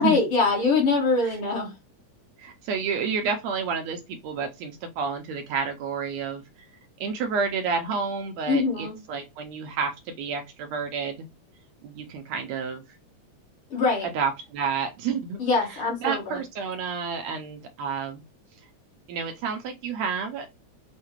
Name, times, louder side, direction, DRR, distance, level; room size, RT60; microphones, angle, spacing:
voice 1, 0.0-1.7 8.5-9.0 13.7-14.1 15.4-16.4, left 4 dB, 55° left, 1.8 m, -23 dB
voice 2, 2.4-6.4 7.0-11.3 11.8-12.8 14.1-15.4 15.7-18.2 19.1-20.5, right 5 dB, 80° right, 1.7 m, -30 dB
6.4 x 2.1 x 2.9 m
omnidirectional pair, 3.4 m